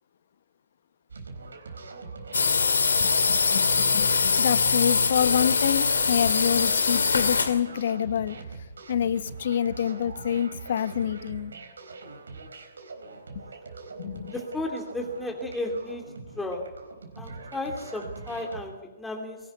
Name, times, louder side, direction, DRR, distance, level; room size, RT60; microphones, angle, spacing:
sound 1, 1.1-18.6, right 4 dB, 70° right, 4.2 m, -42 dB
sound 2, 2.3-7.6, left 5 dB, 75° left, 2.3 m, -23 dB
voice 1, 3.0-8.4 8.9-11.5 14.0-14.3, left 9 dB, 55° left, 14 dB, 1.2 m, -27 dB
voice 2, 14.3-16.0 16.4-16.7 17.2-19.4, left 1 dB, 5° left, 2 dB, 2.9 m, -33 dB
23.0 x 18.0 x 9.4 m, 1.0 s
figure-of-eight pair, 130°, 0 cm